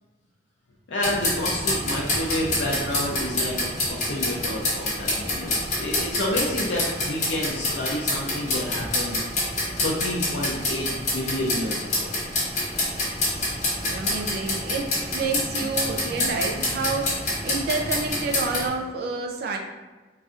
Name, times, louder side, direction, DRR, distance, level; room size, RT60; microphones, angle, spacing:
voice 1, 0.9-9.2 9.8-12.2, left 1 dB, 75° left, -4 dB, 0.5 m, -29 dB
sound 1, 1.0-18.7, left 1 dB, 40° left, 1.1 m, -27 dB
voice 2, 13.8-19.6, right 4 dB, 55° right, 1 dB, 0.4 m, -29 dB
4.0 x 2.4 x 2.4 m, 1.3 s
head